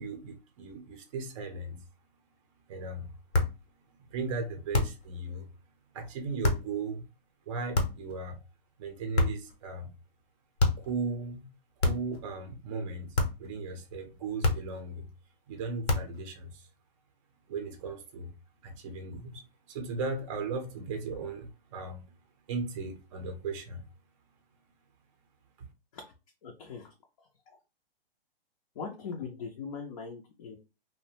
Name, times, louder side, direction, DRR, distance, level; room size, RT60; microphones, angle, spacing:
voice 1, 0.0-1.8 2.7-3.1 4.0-5.5 5.9-7.0 7.5-8.4 8.8-9.9 10.8-11.5 11.8-15.1 15.5-16.7 17.5-18.3 18.6-22.0 22.5-23.8 25.6-25.7, right 4 dB, 30° right, 0.5 m, -37 dB
sound 1, 3.3-3.6 4.7-5.1 6.4-6.7 7.7-8.1 9.1-9.6 10.6-10.9 11.8-12.2 13.1-13.5 14.4-14.8 15.9-16.2, left 2 dB, 90° left, 0.9 m, -28 dB
voice 2, 26.4-26.9 27.5-27.6 28.8-30.6, left 5 dB, 35° left, 0.4 m, -40 dB
2.5 x 2.1 x 2.8 m
hypercardioid pair, 145°, 30 cm